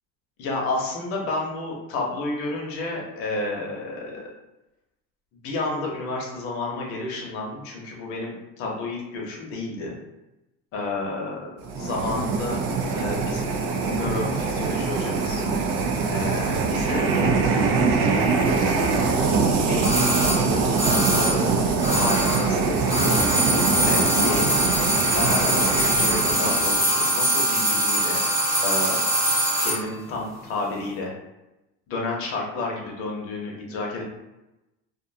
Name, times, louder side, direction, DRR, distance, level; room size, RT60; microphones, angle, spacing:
voice 1, 0.4-4.2 5.4-10.0 10.7-12.6 12.9-13.5 13.8-15.4 16.1-17.1 18.4-18.9 19.7-21.6 22.0-24.8 25.1-28.2 28.6-29.0 29.6-31.1 31.9-34.0, left 2 dB, 45° left, -2 dB, 0.7 m, -31 dB
sound 1, 11.6-27.0, right 4 dB, 80° right, 0.5 m, -23 dB
sound 2, 19.8-22.6 22.8-29.9 30.1-30.2, right 1 dB, 10° right, 0.4 m, -23 dB
2.5 x 2.2 x 2.6 m, 0.97 s
cardioid pair, 155°, 31 cm